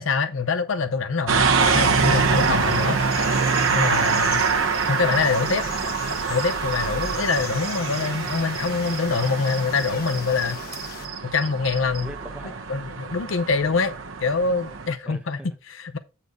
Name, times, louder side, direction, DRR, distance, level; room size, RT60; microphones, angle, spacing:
voice 1, 0.0-3.0 3.7-4.4 4.9-5.6 6.3-10.6 11.2-12.1 12.7-13.9 14.2-16.0, left 4 dB, 70° left, 0.6 m, -25 dB
sound 1, 1.3-14.9, right 5 dB, 80° right, 0.9 m, -25 dB
sound 2, 1.6-11.1, left 5 dB, 50° left, 1.2 m, -38 dB
sound 3, 1.7-12.0, right 9 dB, 50° right, 1.4 m, -40 dB
voice 2, 12.0-12.6 15.0-15.5, right 1 dB, 5° right, 1.1 m, -42 dB
8.3 x 4.2 x 5.0 m
head